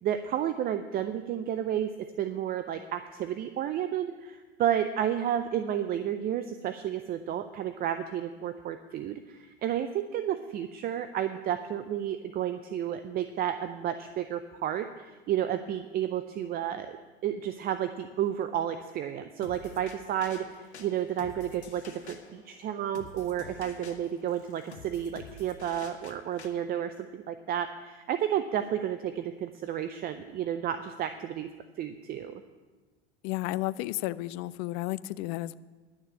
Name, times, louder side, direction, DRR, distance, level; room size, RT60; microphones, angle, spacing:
voice 1, 0.0-1.9 2.2-17.0 17.2-31.5 31.8-32.4, right 10 dB, 30° right, 10 dB, 0.5 m, -31 dB
sound 1, 19.4-26.5, left 4 dB, 90° left, 1.3 m, -49 dB
voice 2, 33.2-35.6, left 17 dB, 45° left, 18 dB, 0.4 m, -32 dB
11.0 x 6.7 x 8.5 m, 1.3 s
hypercardioid pair, 95°, 33 cm